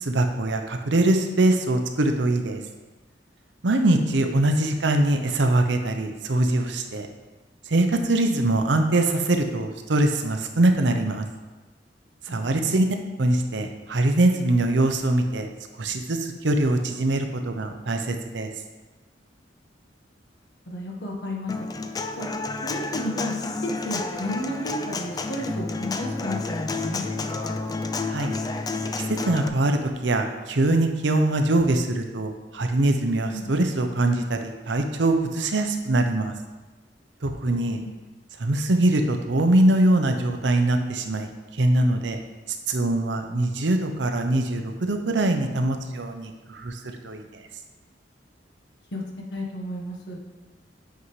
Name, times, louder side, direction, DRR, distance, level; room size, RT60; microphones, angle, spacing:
voice 1, 0.0-2.6 3.6-7.1 7.7-11.3 12.3-12.9 13.2-15.5 15.8-18.5 28.1-28.3 29.1-36.3 37.2-37.8 38.4-42.2 42.7-46.8 47.0-47.4, right 2 dB, 75° right, 6 dB, 0.7 m, -23 dB
voice 2, 12.3-12.8 20.7-21.5 22.2-22.3 22.6-23.4 23.6-27.4 33.3-33.5 37.5-37.9 48.9-49.0 49.3-50.2, left 1 dB, 70° left, 0 dB, 1.4 m, -33 dB
Human voice / Acoustic guitar, 21.5-29.5, left 3 dB, 20° left, 0.4 m, -30 dB
8.2 x 5.5 x 3.2 m, 1.2 s
head